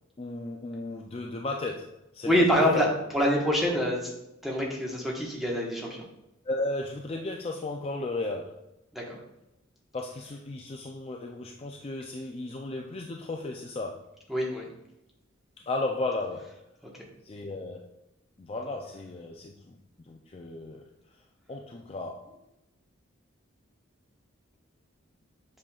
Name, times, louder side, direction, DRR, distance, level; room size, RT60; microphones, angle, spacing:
voice 1, 0.2-2.3 2.7-2.9 6.4-8.7 9.9-14.1 15.6-16.6 17.2-17.9 18.4-19.8 20.0-20.9 21.5-22.3, left 2 dB, 30° left, 2 dB, 0.4 m, -35 dB
voice 2, 2.2-4.1 4.4-6.0 8.9-9.2 14.3-14.7 16.9-17.1, equal, ahead, -3 dB, 1.2 m, -26 dB
7.5 x 5.7 x 2.4 m, 0.88 s
head